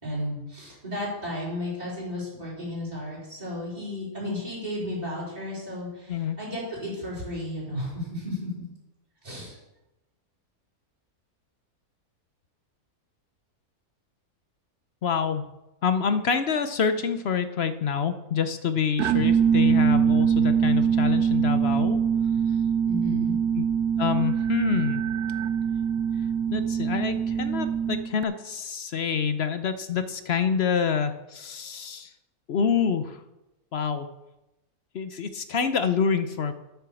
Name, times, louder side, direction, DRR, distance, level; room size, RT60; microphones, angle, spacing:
voice 1, 0.0-8.6 9.2-9.6 22.8-23.4, left 1 dB, 25° right, -8 dB, 4.3 m, -33 dB
voice 2, 15.0-15.4 15.8-22.0 23.6-23.7 24.0-25.0 26.5-32.1 32.5-33.2 33.7-34.1 34.9-36.5, left 6 dB, 55° left, 10 dB, 0.8 m, -27 dB
sound 1, 19.0-28.2, right 7 dB, 85° right, 1.1 m, -23 dB
9.5 x 8.0 x 7.1 m, 0.96 s
omnidirectional pair, 1.6 m